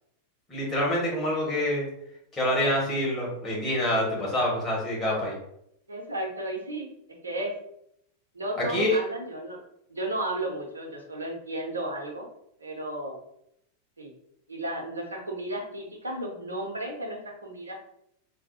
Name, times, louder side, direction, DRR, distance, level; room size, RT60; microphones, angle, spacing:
voice 1, 0.5-1.9 2.3-5.3 8.7-9.0, left 1 dB, 20° left, -4 dB, 1.4 m, -26 dB
voice 2, 5.9-7.6 8.3-9.6 9.9-12.3 12.6-13.2 14.0-14.1 14.5-17.8, right 1 dB, 75° right, 1 dB, 0.6 m, -34 dB
3.3 x 2.2 x 2.7 m, 0.76 s
figure-of-eight pair, 90°, 0 cm